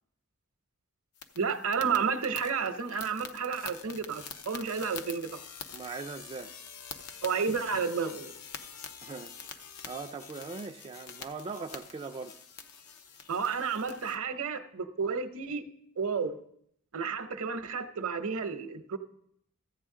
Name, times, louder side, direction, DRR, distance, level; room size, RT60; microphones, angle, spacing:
sound 1, 1.2-14.2, left 6 dB, 90° left, 0.8 m, -46 dB
voice 1, 1.4-5.4 7.2-8.3 13.3-15.6 16.0-16.4 16.9-19.0, right 5 dB, 65° right, 0.7 m, -31 dB
voice 2, 5.7-6.6 9.0-12.4, right 4 dB, 25° right, 0.3 m, -41 dB
14.5 x 8.5 x 3.7 m
head